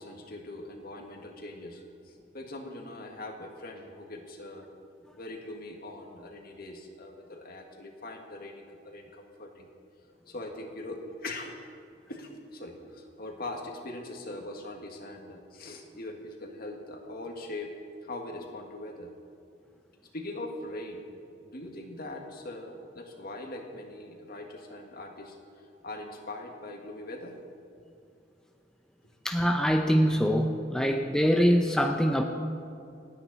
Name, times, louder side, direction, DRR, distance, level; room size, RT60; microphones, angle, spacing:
voice 1, 0.0-4.7 5.1-9.7 10.3-11.5 12.1-17.7 18.0-19.1 20.1-21.1 21.4-25.4 25.8-27.4, left 2 dB, 55° left, 2 dB, 1.8 m, -41 dB
voice 2, 29.2-32.2, equal, 5° left, 3 dB, 0.6 m, -24 dB
28.0 x 9.4 x 4.2 m, 2.6 s
head